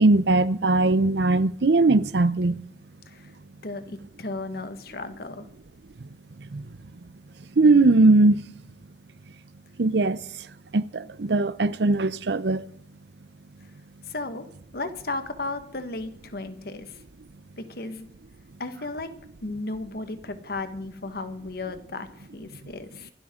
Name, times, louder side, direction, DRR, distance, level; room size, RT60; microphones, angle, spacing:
voice 1, 0.0-2.6 6.5-6.7 7.6-8.5 9.8-10.2 10.7-12.7, right 2 dB, 70° right, 0.7 m, -20 dB
voice 2, 3.6-5.5 14.0-14.5 14.7-17.0 17.6-18.1 18.6-19.1 19.4-23.1, left 2 dB, 60° left, 1.5 m, -35 dB
25.0 x 12.5 x 3.8 m
head